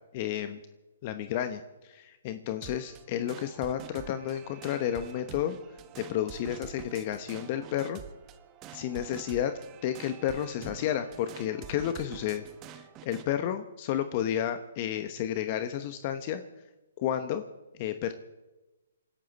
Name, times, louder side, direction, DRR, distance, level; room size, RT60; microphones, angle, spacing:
voice 1, 0.1-0.6 1.0-5.6 6.0-8.0 8.7-9.5 9.8-12.4 12.7-16.4 17.0-17.4 17.8-18.1, left 10 dB, 40° left, 10 dB, 1.0 m, -31 dB
sound 1, 2.6-13.3, right 10 dB, 25° right, 1.1 m, -47 dB
28.5 x 12.0 x 4.2 m, 1.1 s
hypercardioid pair, 145°, 0 cm